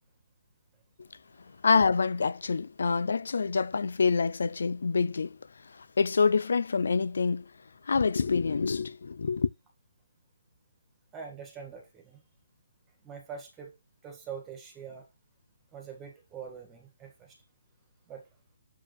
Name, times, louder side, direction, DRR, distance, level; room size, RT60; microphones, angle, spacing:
voice 1, 1.6-5.4 5.7-7.5 7.9-9.5, left 5 dB, 70° left, 0.6 m, -26 dB
voice 2, 11.1-12.2 13.0-13.7 14.0-15.0 15.7-17.4 18.1-18.2, right 6 dB, 15° right, 1.7 m, -44 dB
6.9 x 4.8 x 3.2 m
hypercardioid pair, 160°, 0 cm